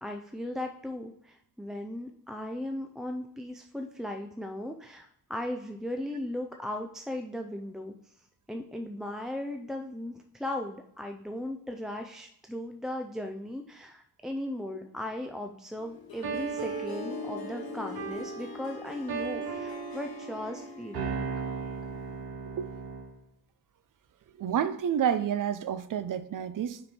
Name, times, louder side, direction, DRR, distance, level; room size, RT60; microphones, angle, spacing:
voice 1, 0.0-7.9 8.5-21.3, left 1 dB, ahead, 0.3 m, -37 dB
Harp, 15.8-22.3, left 8 dB, 70° left, 0.9 m, -44 dB
sound 1, 16.2-23.2, right 5 dB, 80° right, 1.1 m, -37 dB
voice 2, 24.4-26.8, right 9 dB, 55° right, 0.5 m, -29 dB
6.2 x 4.5 x 4.2 m
wide cardioid pair, 130°, 37 cm